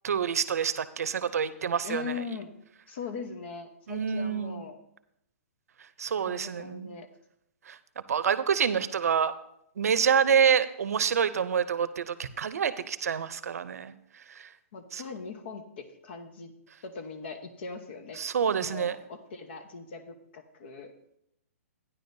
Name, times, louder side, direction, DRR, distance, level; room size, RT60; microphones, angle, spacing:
voice 1, 0.0-2.1 3.9-4.6 6.0-6.9 7.7-7.8 8.1-9.3 9.8-13.9 14.9-15.0 18.2-19.0, right 7 dB, 80° right, 14 dB, 0.6 m, -27 dB
voice 2, 1.8-2.5 2.9-4.8 6.3-7.1 14.7-16.5 16.8-18.2 18.6-20.9, left 5 dB, 45° left, 6 dB, 1.0 m, -40 dB
13.0 x 9.9 x 2.7 m, 0.78 s
hypercardioid pair, 170°, 8 cm